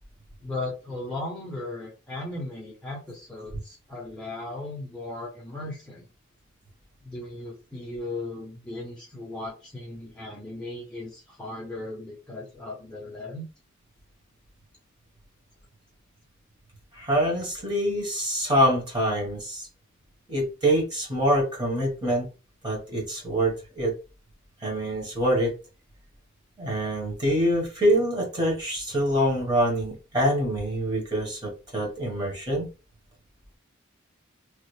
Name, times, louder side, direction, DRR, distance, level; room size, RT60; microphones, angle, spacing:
voice 1, 0.4-6.1 7.0-13.4, left 2 dB, 5° left, -4 dB, 0.8 m, -37 dB
voice 2, 16.9-19.7 20.3-22.3 22.6-23.9 24.6-25.5 26.6-32.7, equal, 20° right, -2 dB, 1.3 m, -25 dB
3.2 x 2.4 x 3.2 m, 0.31 s
head